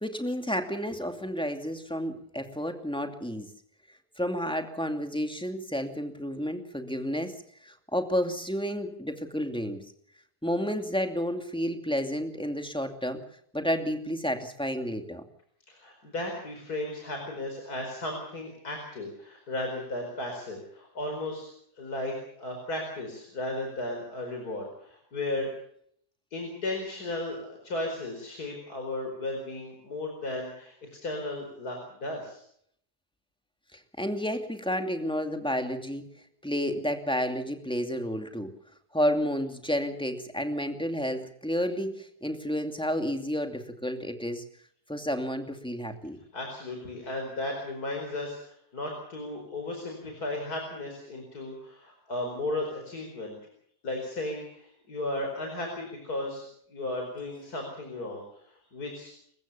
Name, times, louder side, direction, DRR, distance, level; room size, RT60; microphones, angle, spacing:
voice 1, 0.0-3.5 4.2-7.3 7.6-9.8 10.4-13.2 13.5-15.2 33.7-36.0 36.4-38.5 38.9-44.4 44.9-46.2, equal, 5° left, 5 dB, 2.5 m, -31 dB
voice 2, 15.7-21.5 21.8-25.5 26.3-32.4 46.3-53.4 53.8-56.5 56.7-58.2 58.5-59.1, left 1 dB, 65° left, 2 dB, 5.2 m, -35 dB
28.0 x 15.0 x 7.0 m, 0.67 s
omnidirectional pair, 1.7 m